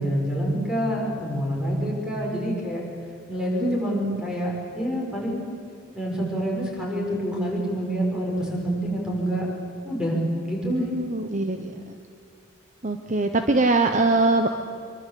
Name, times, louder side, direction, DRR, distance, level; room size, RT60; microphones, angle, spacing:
voice 1, 0.0-2.8 3.3-5.5 5.9-9.5 9.8-10.2 10.4-10.9, equal, 5° right, -2 dB, 6.2 m, -27 dB
voice 2, 3.6-4.2 10.7-12.0 12.8-14.5, right 2 dB, 35° right, 6 dB, 1.1 m, -23 dB
25.5 x 23.5 x 8.6 m, 2.3 s
head